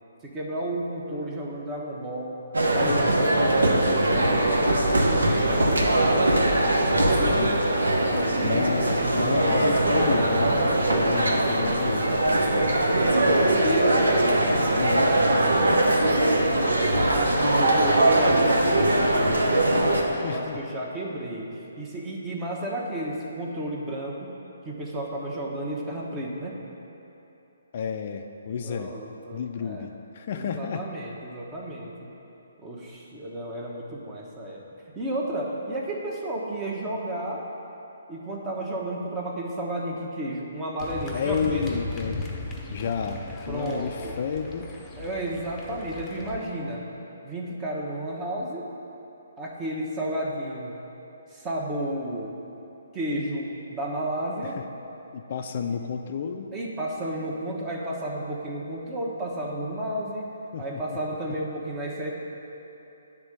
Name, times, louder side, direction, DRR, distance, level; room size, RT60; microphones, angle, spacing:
voice 1, 0.2-4.4 4.9-5.9 6.8-8.7 13.6-14.1 16.9-19.7 20.2-24.4 24.6-26.6 28.6-29.9 30.3-31.9 32.6-34.6 34.9-37.5 38.1-41.8 43.5-44.2 45.0-46.8 47.2-48.7 49.4-50.8 51.3-52.4 52.9-54.6 56.5-60.3 60.6-62.2, right 1 dB, 20° right, -2 dB, 1.1 m, -32 dB
sound 1, 2.5-20.0, right 1 dB, 75° right, 0.9 m, -21 dB
voice 2, 2.7-3.3 4.7-5.0 6.8-7.7 8.4-12.7 14.7-15.1 20.1-20.6 27.7-28.9 29.3-30.9 41.1-42.2 42.7-44.7 54.4-54.6 55.1-56.5 60.5-61.0, left 6 dB, 45° left, 5 dB, 0.4 m, -31 dB
sound 2, 40.8-46.4, left 3 dB, 15° left, 0.8 m, -37 dB
9.5 x 3.7 x 6.6 m, 3.0 s
figure-of-eight pair, 135°, 0 cm